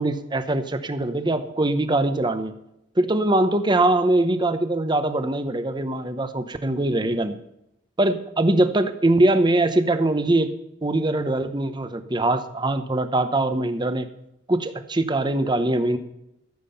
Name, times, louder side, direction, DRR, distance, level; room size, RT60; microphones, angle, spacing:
voice 1, 0.0-2.5 3.0-7.4 8.0-10.5 10.8-14.1 14.5-16.0, right 2 dB, 25° right, 10 dB, 0.9 m, -22 dB
14.0 x 7.4 x 5.6 m, 0.81 s
head